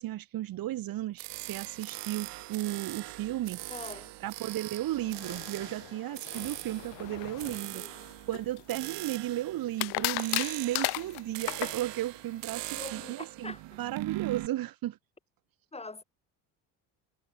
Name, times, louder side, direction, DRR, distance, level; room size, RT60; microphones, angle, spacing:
voice 1, 0.0-3.6 4.2-7.8 8.3-15.0, right 14 dB, 50° right, 1.3 m, -34 dB
sound 1, 1.2-14.5, right 19 dB, 70° right, 7.7 m, -41 dB
sound 2, 3.7-8.8, left 24 dB, 80° left, 3.3 m, -50 dB
voice 2, 3.7-4.1 7.7-7.9 12.7-13.8 15.7-16.0, left 3 dB, 15° left, 3.1 m, -43 dB
sound 3, 8.3-9.1 9.8-11.8, left 22 dB, 60° left, 0.7 m, -31 dB
supercardioid pair, 105°, 43 cm